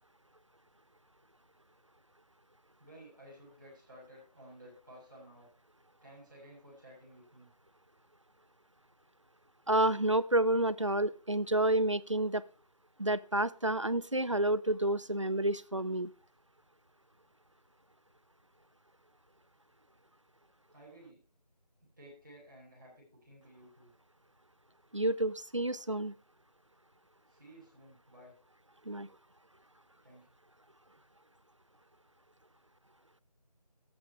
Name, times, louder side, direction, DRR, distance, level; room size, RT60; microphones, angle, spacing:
voice 1, 2.8-5.5 6.0-7.5 20.7-21.2 22.0-23.9 27.3-28.3 30.0-30.3, right 1 dB, 30° right, -5 dB, 6.9 m, -55 dB
voice 2, 9.7-12.4 13.0-16.1 24.9-26.1 28.9-29.1, right 1 dB, 45° right, 18 dB, 0.5 m, -29 dB
13.0 x 8.8 x 4.8 m, 0.39 s
figure-of-eight pair, 175°, 21 cm